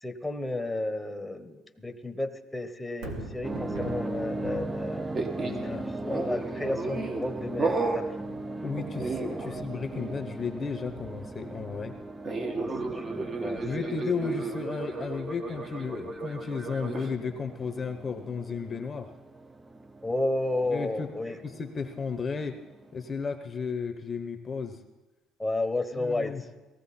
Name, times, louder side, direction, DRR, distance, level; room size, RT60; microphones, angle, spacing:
voice 1, 0.0-5.0 5.4-8.3 9.4-9.6 12.2-13.9 20.0-21.4 25.4-26.3, left 2 dB, 5° left, 7 dB, 1.1 m, -33 dB
Thunder, 2.9-17.1 17.6-17.7, right 2 dB, 90° right, 2.8 m, -46 dB
sound 1, 3.4-23.1, right 2 dB, 15° right, 0.6 m, -39 dB
sound 2, 5.1-5.6 6.1-7.3 7.6-8.1 8.8-9.7 9.9-10.2 12.2-17.1, right 3 dB, 35° right, 1.5 m, -33 dB
voice 2, 5.3-6.2 8.6-12.0 13.6-19.1 20.7-21.1 21.4-22.6 22.9-24.8 25.9-26.4, left 5 dB, 30° left, 7 dB, 0.9 m, -34 dB
18.5 x 15.0 x 4.3 m, 1.1 s
cardioid pair, 110°, 0 cm